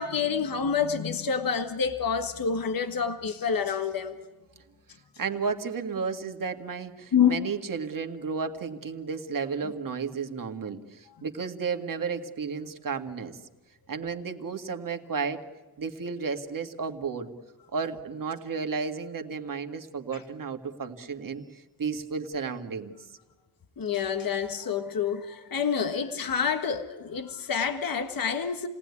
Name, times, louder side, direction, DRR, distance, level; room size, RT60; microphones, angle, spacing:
voice 1, 0.0-4.2 7.1-7.4 23.8-28.7, left 7 dB, 65° left, 1.6 m, -27 dB
voice 2, 5.2-13.4 13.9-15.4 15.8-17.3 17.7-22.9, right 5 dB, 60° right, 2.0 m, -33 dB
29.5 x 19.0 x 9.8 m
wide cardioid pair, 120°, 38 cm